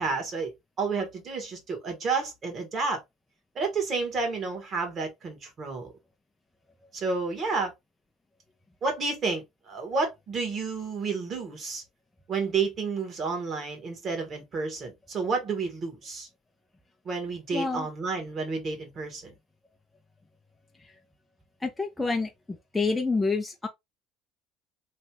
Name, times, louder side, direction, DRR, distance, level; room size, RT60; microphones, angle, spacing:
voice 1, 0.0-3.0 3.5-5.9 6.9-7.7 8.8-11.8 12.3-16.3 17.0-19.3, right 4 dB, 40° right, 1.5 m, -30 dB
voice 2, 17.5-17.9 20.7-21.0 21.6-23.7, left 3 dB, 10° left, 0.5 m, -29 dB
3.2 x 2.4 x 2.9 m
cardioid pair, 115°, 0 cm